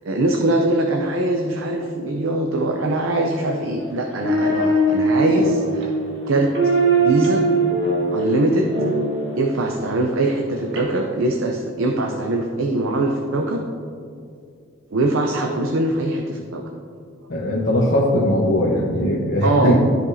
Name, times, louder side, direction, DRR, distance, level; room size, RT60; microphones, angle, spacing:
voice 1, 0.1-5.9 6.3-6.5 7.0-7.4 8.1-8.7 9.4-13.6 14.9-16.6 19.4-19.8, right 2 dB, 85° right, 2 dB, 0.6 m, -22 dB
sound 1, 3.8-9.7 10.8-10.9, right 2 dB, 60° right, 1.7 m, -21 dB
voice 2, 17.3-19.8, left 1 dB, 55° left, -6 dB, 1.1 m, -19 dB
13.5 x 5.1 x 2.7 m, 2.4 s
head